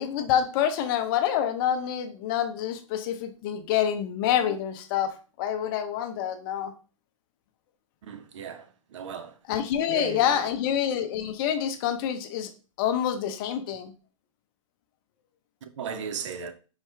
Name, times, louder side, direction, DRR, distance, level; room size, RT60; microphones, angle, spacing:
voice 1, 0.0-6.7 9.5-12.5 12.8-13.9, left 9 dB, 40° left, 0.6 m, -27 dB
voice 2, 8.0-9.4 9.9-10.5 15.6-16.5, right 7 dB, 60° right, 0.7 m, -36 dB
4.7 x 2.9 x 3.3 m
hypercardioid pair, 125°, 17 cm